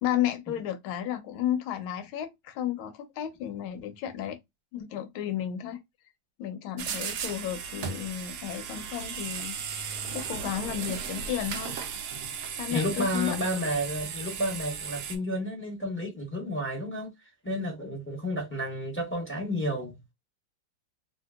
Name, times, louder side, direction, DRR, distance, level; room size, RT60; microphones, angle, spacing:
voice 1, 0.0-4.4 4.7-5.8 6.4-11.7 12.6-13.4, left 11 dB, 85° left, 1.5 m, -33 dB
sound 1, 6.8-15.2, right 7 dB, 80° right, 0.8 m, -36 dB
voice 2, 12.7-17.1 17.4-20.0, equal, 10° left, 0.7 m, -31 dB
3.1 x 2.8 x 2.3 m
omnidirectional pair, 2.2 m